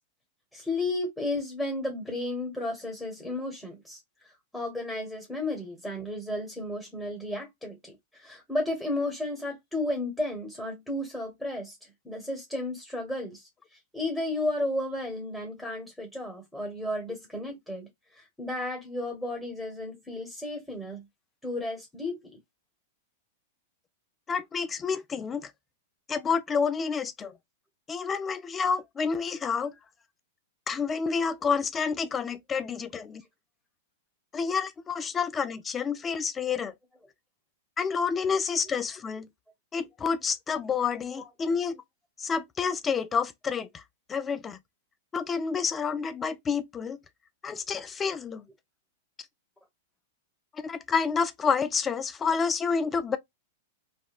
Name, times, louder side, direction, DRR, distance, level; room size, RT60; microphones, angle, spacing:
voice 1, 0.5-4.0 4.5-11.8 12.0-13.5 13.9-17.9 18.1-21.0 21.4-22.4 38.3-38.4 41.1-41.2, left 2 dB, 5° left, 1.1 m, -33 dB
voice 2, 24.3-25.5 26.1-27.3 27.9-29.7 30.7-33.2 34.3-36.7 37.8-39.3 39.7-41.8 42.2-43.8 44.1-44.6 45.1-47.0 47.4-48.4 50.5-53.2, left 5 dB, 20° left, 0.4 m, -29 dB
3.3 x 2.1 x 2.3 m
hypercardioid pair, 105°, 0 cm